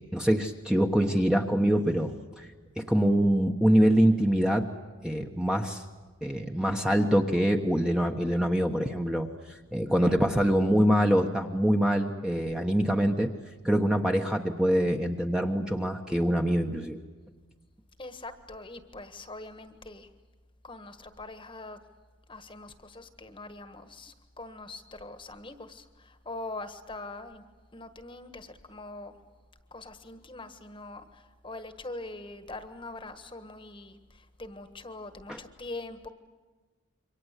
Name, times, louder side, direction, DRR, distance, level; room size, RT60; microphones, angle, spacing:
voice 1, 0.0-2.5 2.8-4.7 5.0-5.8 6.2-13.3 13.6-17.0 35.3-35.4, equal, 5° right, 2 dB, 1.2 m, -25 dB
voice 2, 18.0-20.1 20.6-21.8 22.3-27.4 27.7-29.2 29.7-36.1, left 2 dB, 25° left, 10 dB, 1.5 m, -43 dB
27.5 x 24.5 x 8.3 m, 1.3 s
head